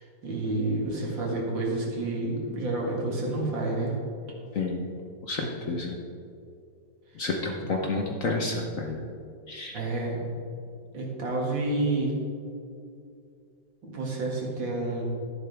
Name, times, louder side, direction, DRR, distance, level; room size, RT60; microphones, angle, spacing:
voice 1, 0.0-3.9 7.6-7.7 9.7-10.3 10.9-12.2 13.8-15.0, right 2 dB, 70° right, -2 dB, 2.7 m, -29 dB
voice 2, 4.5-4.9 5.2-6.0 7.2-9.0 9.5-9.7, left 3 dB, 50° left, 1 dB, 1.1 m, -30 dB
12.0 x 10.5 x 3.5 m, 2.5 s
omnidirectional pair, 2.1 m